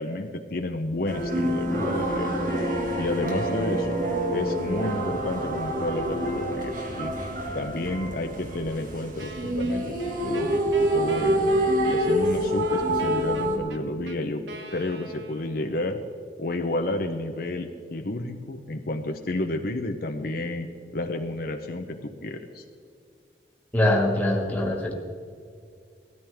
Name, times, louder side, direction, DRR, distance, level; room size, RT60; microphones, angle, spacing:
voice 1, 0.0-2.5 3.0-4.0 4.3-7.1 7.5-11.5 11.9-14.4 14.7-16.0 16.4-20.7 20.9-22.6, left 2 dB, 55° left, 5 dB, 0.8 m, -31 dB
sound 1, 1.1-13.6, right 1 dB, 50° right, 2.0 m, -27 dB
Wind instrument woodwind instrument, 9.2-15.8, right 1 dB, 85° right, 1.1 m, -41 dB
voice 2, 23.7-25.0, left 1 dB, 10° left, -1 dB, 2.0 m, -23 dB
17.5 x 13.5 x 3.6 m, 2.4 s
head